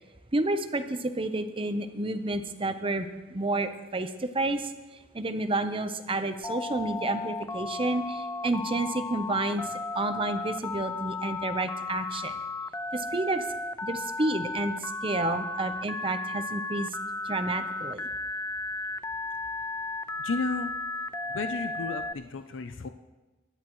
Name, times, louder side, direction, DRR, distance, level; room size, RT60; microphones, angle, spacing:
voice 1, 0.3-4.7 5.1-9.6 9.9-12.4 12.9-13.4 13.8-16.9 17.2-18.1, right 2 dB, 30° right, 9 dB, 0.8 m, -30 dB
Telephone, 6.4-22.1, left 3 dB, 15° left, 0.3 m, -34 dB
voice 2, 20.2-20.7 21.3-22.9, left 3 dB, 85° left, 9 dB, 0.5 m, -32 dB
22.0 x 11.0 x 3.1 m, 1.2 s
head